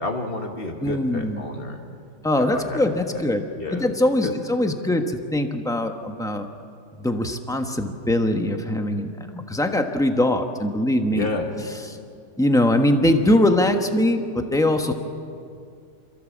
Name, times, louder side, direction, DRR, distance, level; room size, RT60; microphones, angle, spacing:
voice 1, 0.0-1.8 2.4-3.2 3.6-3.9 4.2-4.3 11.1-11.5, left 2 dB, 30° left, 3 dB, 2.0 m, -30 dB
voice 2, 0.8-1.4 2.2-3.4 3.7-6.5 7.0-11.3 11.8-12.0 12.4-14.9, left 1 dB, 5° left, 5 dB, 0.8 m, -22 dB
27.5 x 15.0 x 7.4 m, 2.4 s
omnidirectional pair, 2.0 m